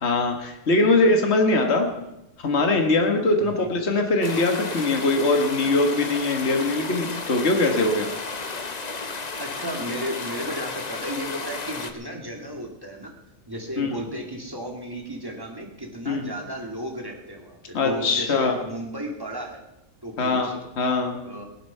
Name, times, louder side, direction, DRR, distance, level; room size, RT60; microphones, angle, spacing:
voice 1, 0.0-1.9 2.4-8.1 13.8-14.0 16.1-16.3 17.7-18.5 20.2-21.2, left 2 dB, 55° left, 3 dB, 1.9 m, -22 dB
sound 1, 4.2-11.9, left 4 dB, 35° left, 1.0 m, -33 dB
voice 2, 9.4-13.1 13.5-19.6 20.0-20.6 21.2-21.4, equal, 15° right, 1 dB, 2.2 m, -34 dB
17.5 x 11.0 x 5.6 m, 0.89 s
omnidirectional pair, 1.4 m